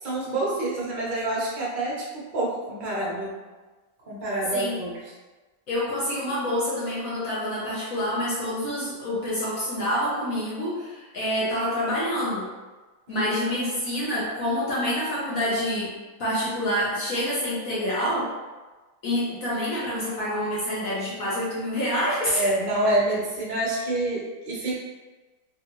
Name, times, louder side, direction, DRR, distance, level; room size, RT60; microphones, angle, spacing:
voice 1, 0.0-3.4 4.1-4.9 13.1-13.2 22.3-24.8, right 1 dB, 55° right, -6 dB, 0.5 m, -27 dB
voice 2, 5.7-12.5 13.1-15.9 16.2-18.3 19.0-22.5, equal, 60° left, -7 dB, 0.9 m, -27 dB
3.5 x 2.5 x 2.9 m, 1.3 s
omnidirectional pair, 2.1 m